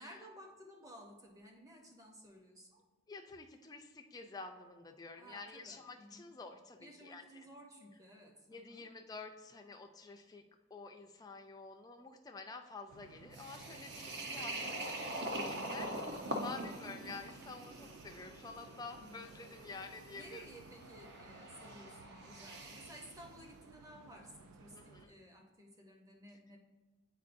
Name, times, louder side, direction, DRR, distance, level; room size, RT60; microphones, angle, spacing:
voice 1, 0.0-2.8 5.2-6.3 6.8-8.9 18.8-19.3 20.1-26.6, equal, 15° right, 1 dB, 0.7 m, -55 dB
voice 2, 3.1-7.5 8.5-10.4 10.7-20.4 24.7-25.1, left 3 dB, 15° left, 4 dB, 0.4 m, -49 dB
sound 1, 12.9-25.1, right 4 dB, 85° right, 0.4 m, -58 dB
sound 2, 13.3-23.1, right 1 dB, 50° right, 0.7 m, -44 dB
8.2 x 4.5 x 2.6 m, 1.3 s
head